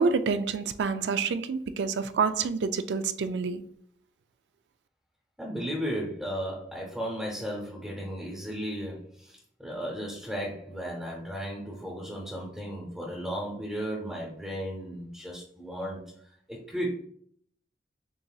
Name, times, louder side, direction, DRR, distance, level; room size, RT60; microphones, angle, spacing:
voice 1, 0.0-3.7, right 5 dB, 70° right, 0.4 m, -28 dB
voice 2, 5.4-16.9, equal, 5° right, 0.8 m, -35 dB
6.8 x 2.7 x 2.3 m
head